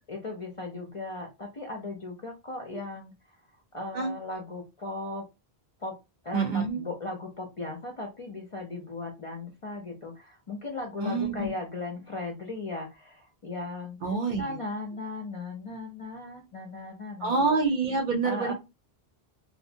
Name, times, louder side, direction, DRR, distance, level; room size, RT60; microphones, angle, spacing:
voice 1, 0.1-3.1 3.7-5.3 5.8-6.0 6.2-14.0 14.4-17.3 18.2-18.5, left 2 dB, 45° left, 1 dB, 0.4 m, -37 dB
voice 2, 6.3-6.8 11.0-11.5 14.0-14.6 17.2-18.5, right 4 dB, 55° right, 4 dB, 0.6 m, -27 dB
2.5 x 2.0 x 2.6 m, 0.25 s
omnidirectional pair, 1.0 m